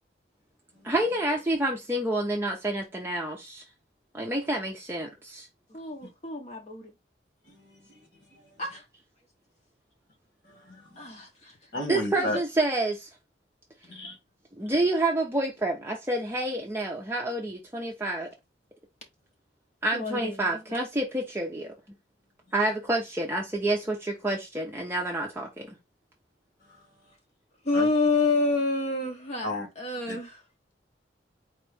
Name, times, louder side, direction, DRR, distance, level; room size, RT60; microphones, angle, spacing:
voice 1, 0.8-3.6 4.1-5.5 11.9-13.1 14.6-18.3 19.8-21.7 22.5-25.8, right 1 dB, 15° right, 0.6 m, -28 dB
voice 2, 5.7-6.9 8.6-8.8 11.0-11.6 12.2-12.3 19.9-20.6 27.6-29.5 29.8-30.4, left 3 dB, 35° left, 0.8 m, -28 dB
voice 3, 7.5-8.6 10.4-11.1 11.7-12.4 13.8-14.2 14.6-14.7 26.6-26.9 27.7-27.9 29.4-29.7 30.1-30.2, left 1 dB, 65° left, 1.7 m, -35 dB
4.4 x 2.9 x 3.3 m
head